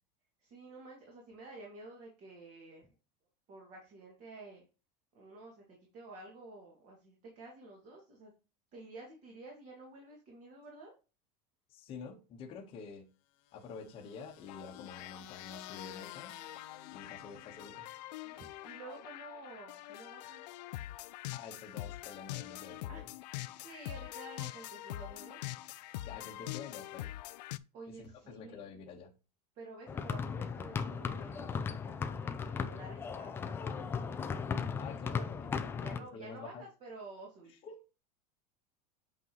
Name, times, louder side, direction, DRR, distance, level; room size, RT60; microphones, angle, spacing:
voice 1, 0.4-2.9 3.5-4.6 5.1-8.3 8.7-10.9 17.1-17.4 18.2-20.4 22.9-25.4 27.7-28.6 29.6-31.7 32.1-34.2 35.8-37.5, right 2 dB, 35° right, 2.2 m, -51 dB
voice 2, 11.7-13.1 13.5-16.4 16.9-17.9 21.3-23.1 26.0-27.1 27.9-29.1 34.8-36.6 37.6-37.8, left 5 dB, 25° left, 1.2 m, -48 dB
sound 1, 13.5-18.0, left 13 dB, 45° left, 0.8 m, -53 dB
sound 2, 14.5-27.6, left 16 dB, 90° left, 0.5 m, -44 dB
sound 3, 29.9-36.0, left 6 dB, 10° left, 0.4 m, -37 dB
8.3 x 5.4 x 3.0 m
supercardioid pair, 165°, 21 cm